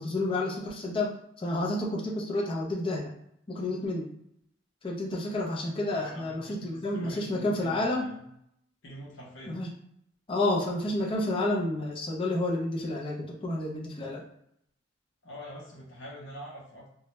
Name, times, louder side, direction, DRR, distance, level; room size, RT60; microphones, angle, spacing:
voice 1, 0.0-3.1 3.5-4.1 4.8-8.1 9.5-9.7 10.3-14.2, left 2 dB, 30° left, -2 dB, 0.4 m, -30 dB
voice 2, 5.9-8.2 8.8-9.6 15.2-16.9, equal, 75° left, -3 dB, 0.7 m, -45 dB
2.2 x 2.0 x 2.9 m, 0.73 s
head